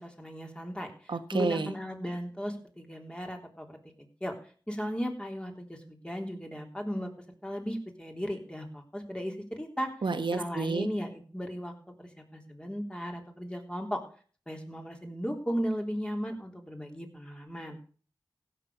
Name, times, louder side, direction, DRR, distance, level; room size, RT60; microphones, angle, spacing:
voice 1, 0.0-3.8 4.2-4.3 4.7-7.1 7.4-9.9 10.3-11.7 12.0-14.0 14.5-17.8, equal, 10° left, 2 dB, 3.5 m, -36 dB
voice 2, 1.1-1.7 10.0-10.9, right 4 dB, 75° right, 9 dB, 1.5 m, -30 dB
15.5 x 6.8 x 6.8 m, 0.43 s
cardioid pair, 40°, 8 cm